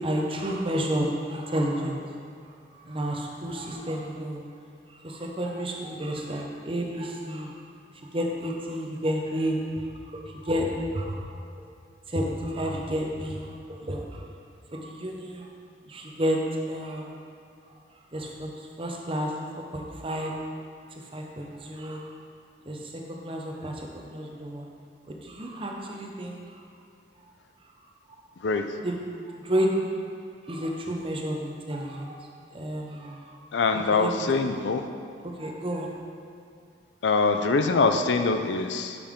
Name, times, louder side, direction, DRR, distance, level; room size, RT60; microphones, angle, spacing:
voice 1, 0.0-2.0 2.7-4.4 5.0-7.5 8.0-9.9 10.1-11.4 12.1-14.2 14.7-15.5 15.8-16.4 16.7-17.2 18.1-20.3 21.1-22.0 22.7-24.6 25.1-26.4 28.8-29.0 29.3-29.9 30.5-32.2 32.5-33.4 33.9-34.2 35.2-35.9 37.3-37.4, equal, 30° right, 0 dB, 0.8 m, -31 dB
voice 2, 33.5-34.8 37.0-39.0, left 4 dB, 85° left, 7 dB, 0.5 m, -23 dB
8.4 x 5.5 x 3.6 m, 2.4 s
head